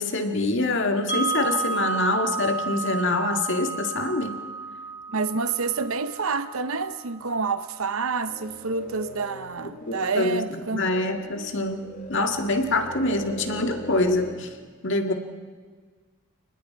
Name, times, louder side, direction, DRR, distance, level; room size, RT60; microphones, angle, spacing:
voice 1, 0.0-4.3 9.9-11.8 12.1-14.5 14.8-15.1, left 2 dB, 55° left, 1.9 m, -25 dB
Wind chime, 1.1-7.1, right 4 dB, 30° right, 3.3 m, -31 dB
voice 2, 5.1-10.9, right 4 dB, 75° right, 0.9 m, -28 dB
sound 1, 8.2-14.4, equal, 40° left, 2.6 m, -40 dB
30.0 x 20.0 x 4.7 m
head